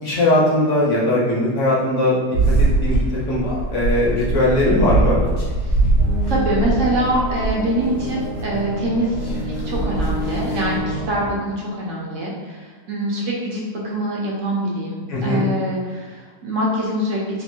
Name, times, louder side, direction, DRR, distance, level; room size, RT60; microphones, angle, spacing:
voice 1, 0.0-2.2 2.6-3.0 3.3-3.4 3.7-5.2 15.1-15.4, left 1 dB, 60° left, -6 dB, 0.9 m, -19 dB
sound 1, 2.3-10.8, right 2 dB, 85° left, 1.4 m, -22 dB
sound 2, 6.0-11.3, equal, 5° left, 0.6 m, -29 dB
voice 2, 6.3-17.2, right 1 dB, 65° right, -4 dB, 0.8 m, -24 dB
3.4 x 2.5 x 2.7 m, 1.5 s
omnidirectional pair, 1.8 m